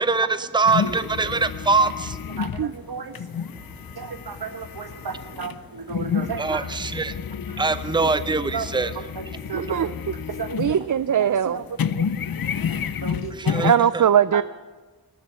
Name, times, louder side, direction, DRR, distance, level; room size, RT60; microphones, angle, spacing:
voice 1, 0.0-2.2 3.2-3.3 6.4-7.2 7.6-9.4 13.3-14.0, right 3 dB, 10° right, 12 dB, 0.7 m, -23 dB
sound 1, 0.6-11.1 11.4-13.7, left 7 dB, 65° left, 0.7 m, -30 dB
voice 2, 2.4-3.1 4.0-6.7 8.5-8.7 9.2-9.9 10.4-10.6 11.2-11.6 12.0-12.1 12.9-13.7 14.3-14.4, right 6 dB, 75° right, 9 dB, 1.6 m, -33 dB
voice 3, 9.5-10.1 10.6-11.6 13.6-14.4, right 9 dB, 55° right, 15 dB, 0.5 m, -20 dB
19.0 x 7.3 x 9.4 m, 1.3 s
wide cardioid pair, 85°, 38 cm